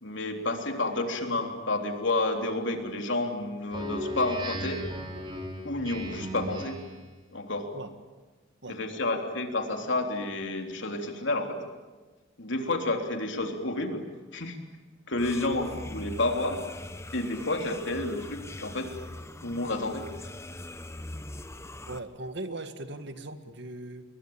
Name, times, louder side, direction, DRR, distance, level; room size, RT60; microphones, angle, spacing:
voice 1, 0.0-4.9 5.6-6.8 7.3-7.7 8.7-11.6 12.4-14.1 14.3-14.6 15.1-16.6 17.1-18.9 19.4-20.1, left 2 dB, 65° left, 4 dB, 3.5 m, -30 dB
Speech synthesizer, 3.7-7.0, right 1 dB, 25° right, 4.3 m, -36 dB
voice 2, 8.6-9.0 15.3-15.7 21.9-24.0, right 2 dB, 65° right, 9 dB, 2.0 m, -39 dB
sound 1, 15.2-22.0, left 1 dB, 15° left, 1.1 m, -42 dB
29.0 x 22.0 x 8.9 m, 1.3 s
head